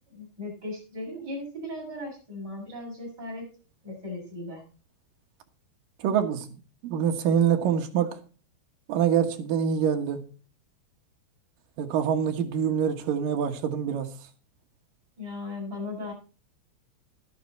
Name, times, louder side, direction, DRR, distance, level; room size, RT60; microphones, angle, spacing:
voice 1, 0.1-3.5 3.8-4.6 15.2-16.1, left 2 dB, 20° right, 7.1 m, -37 dB
voice 2, 6.0-6.5 6.8-8.2 8.9-10.2 11.8-14.1, right 8 dB, 65° right, 2.6 m, -25 dB
12.0 x 11.5 x 4.2 m
omnidirectional pair, 4.9 m